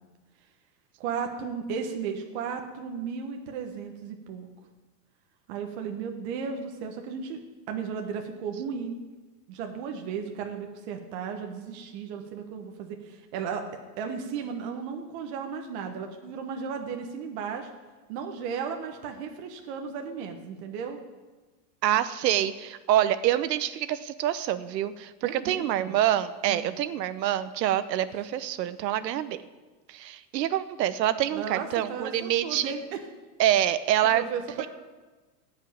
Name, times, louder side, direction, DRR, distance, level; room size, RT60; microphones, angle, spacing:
voice 1, 1.0-4.5 5.5-7.4 7.7-9.0 9.5-13.6 14.0-17.7 18.1-21.0 25.2-25.9 26.4-26.7 31.3-33.0 34.1-34.7, right 6 dB, 45° right, 4 dB, 1.3 m, -35 dB
voice 2, 21.8-29.4 29.9-32.8 33.4-34.3 34.6-34.7, right 12 dB, 90° right, 14 dB, 1.0 m, -26 dB
16.0 x 5.6 x 8.9 m, 1.2 s
supercardioid pair, 165°, 49 cm